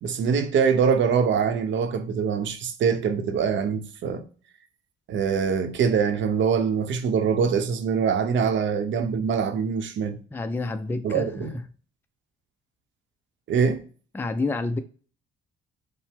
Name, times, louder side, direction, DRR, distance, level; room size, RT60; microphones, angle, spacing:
voice 1, 0.0-4.2 5.1-10.2 11.0-11.6 13.5-13.8, right 6 dB, 70° right, 0.7 m, -24 dB
voice 2, 10.3-11.5 14.1-14.8, left 3 dB, 10° left, 0.4 m, -29 dB
5.6 x 2.0 x 3.4 m
cardioid pair, 90°, 20 cm